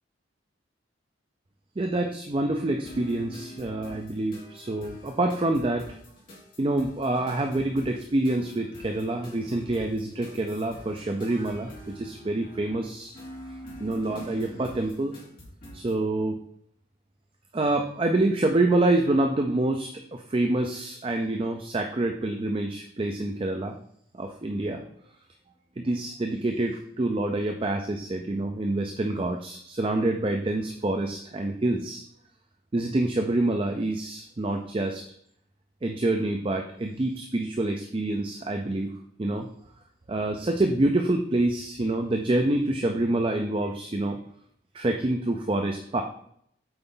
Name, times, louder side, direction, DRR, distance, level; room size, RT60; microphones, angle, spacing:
voice 1, 1.8-5.9 6.6-13.1 13.8-15.1 15.7-16.4 17.5-23.8 24.1-24.8 25.8-32.0 32.7-35.0 35.8-38.9 39.2-39.5 40.1-44.2 44.7-46.0, right 2 dB, 30° right, 4 dB, 0.4 m, -27 dB
sound 1, 2.8-16.0, equal, 45° left, 2.5 m, -46 dB
7.9 x 4.5 x 3.8 m, 0.69 s
head